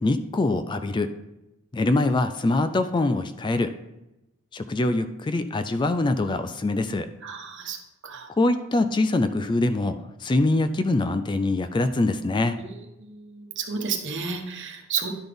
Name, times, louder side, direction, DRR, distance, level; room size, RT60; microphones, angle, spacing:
voice 1, 0.0-1.1 1.7-3.7 4.5-7.1 8.4-12.6, left 2 dB, 20° left, 11 dB, 0.3 m, -24 dB
voice 2, 7.2-8.3 12.6-15.1, right 6 dB, 55° right, 4 dB, 1.1 m, -32 dB
10.5 x 4.0 x 5.1 m, 0.95 s
head